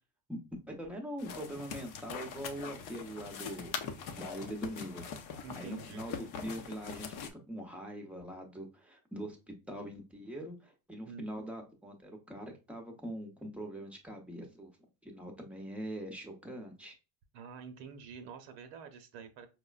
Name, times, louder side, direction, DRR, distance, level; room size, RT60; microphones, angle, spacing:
voice 1, 0.7-3.7 4.2-5.0 5.6-14.7 15.0-16.9, equal, 5° right, 1 dB, 0.7 m, -42 dB
sound 1, 1.2-7.3, left 6 dB, 45° left, 0.6 m, -43 dB
voice 2, 5.4-6.0 11.1-11.2 17.3-19.5, right 6 dB, 60° right, 6 dB, 0.9 m, -47 dB
4.8 x 2.1 x 2.4 m, 0.30 s
supercardioid pair, 100°, 47 cm